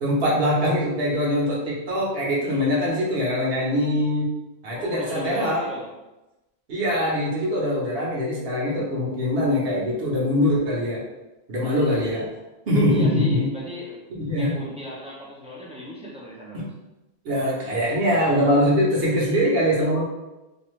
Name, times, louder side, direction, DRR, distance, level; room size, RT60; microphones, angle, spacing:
voice 1, 0.0-4.3 4.6-5.7 6.7-11.0 11.5-12.3 12.7-13.5 14.1-14.6 16.5-16.7 17.2-20.0, equal, 65° right, -5 dB, 1.1 m, -22 dB
voice 2, 4.7-5.9 12.0-12.3 12.9-14.1 14.4-16.7, equal, 10° right, -5 dB, 0.3 m, -37 dB
2.7 x 2.4 x 3.1 m, 1.0 s
omnidirectional pair, 1.1 m